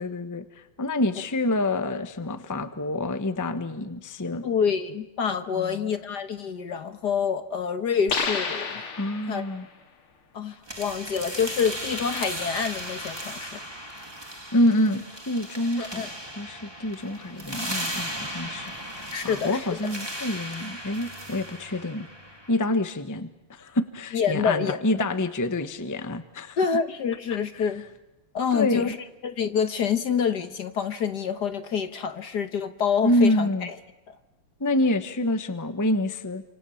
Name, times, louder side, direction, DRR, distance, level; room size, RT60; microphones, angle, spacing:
voice 1, 0.0-4.5 5.5-5.7 9.0-9.6 14.5-16.1 16.4-18.7 19.2-22.1 22.5-26.6 27.6-27.7 28.5-28.9 33.0-33.7 34.6-36.4, left 1 dB, 10° left, 10 dB, 0.9 m, -27 dB
voice 2, 4.4-8.8 9.3-9.4 10.3-13.6 15.8-16.1 19.1-19.7 24.1-24.8 26.6-27.8 28.3-29.0 29.2-33.7 34.1-34.2, left 7 dB, 55° left, 10 dB, 1.6 m, -27 dB
sound 1, 8.1-9.6, left 5 dB, 75° left, 3.2 m, -30 dB
sound 2, 10.7-22.6, right 1 dB, 10° right, 2.8 m, -36 dB
28.0 x 27.0 x 7.3 m, 0.95 s
omnidirectional pair, 2.4 m